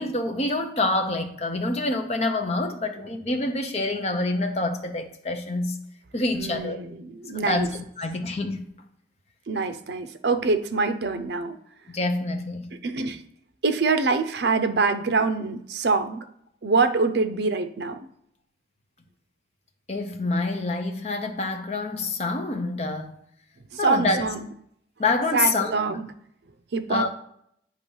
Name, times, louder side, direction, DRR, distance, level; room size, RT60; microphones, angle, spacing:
voice 1, 0.0-5.8 6.1-6.8 7.3-8.7 11.9-12.8 19.9-23.2 23.8-24.2 25.0-26.0 26.9-27.1, left 2 dB, 35° left, 0.7 m, -27 dB
voice 2, 6.4-7.7 9.5-11.6 12.8-13.2 13.6-16.2 16.6-18.1 23.7-24.5 25.3-26.1 26.7-27.1, right 4 dB, 75° right, 0.6 m, -25 dB
8.4 x 3.0 x 5.4 m
head